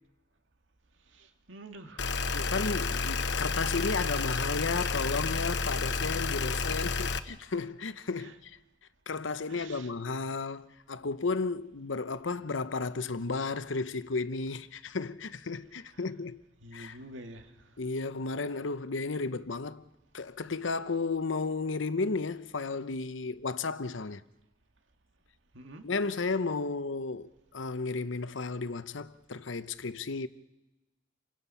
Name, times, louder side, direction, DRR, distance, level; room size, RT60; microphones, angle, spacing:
voice 1, 1.1-3.0 5.8-6.1 7.0-7.2 8.1-8.4 9.5-9.9 15.9-16.1 16.6-17.5 25.5-25.9, right 1 dB, 85° right, 2.1 m, -49 dB
sound 1, 2.0-7.2, left 4 dB, 65° left, 1.1 m, -30 dB
voice 2, 2.3-8.6 9.1-16.4 16.7-17.0 17.8-19.9 20.1-24.2 25.8-30.3, left 4 dB, 90° left, 0.9 m, -33 dB
29.5 x 24.5 x 5.7 m
head